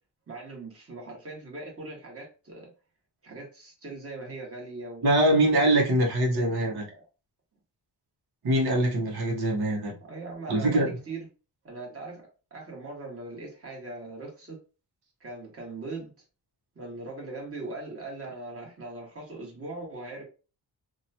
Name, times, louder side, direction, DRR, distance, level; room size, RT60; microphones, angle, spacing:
voice 1, 0.3-2.7 3.2-5.0 6.2-7.0 9.9-11.3 11.6-14.6 15.2-16.1 16.7-20.2, right 3 dB, 35° right, -1 dB, 1.4 m, -40 dB
voice 2, 5.0-6.8 8.4-9.9 10.5-10.9, right 1 dB, 65° right, -2 dB, 1.0 m, -23 dB
2.9 x 2.3 x 2.7 m, 0.34 s
cardioid pair, 95°, 40 cm